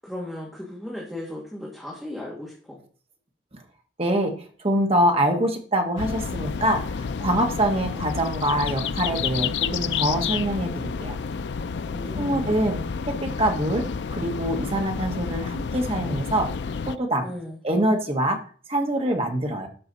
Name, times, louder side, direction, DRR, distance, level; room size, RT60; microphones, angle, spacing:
voice 1, 0.0-2.8 11.9-12.5 17.2-17.6, left 1 dB, ahead, -4 dB, 2.4 m, -36 dB
voice 2, 4.0-6.8 7.2-11.2 12.2-13.8 14.1-16.5 16.9-17.3 17.6-18.4 18.7-19.7, right 1 dB, 35° right, 3 dB, 1.6 m, -24 dB
sound 1, 6.0-17.0, left 6 dB, 80° left, 0.4 m, -30 dB
13.0 x 6.2 x 4.1 m, 0.43 s
head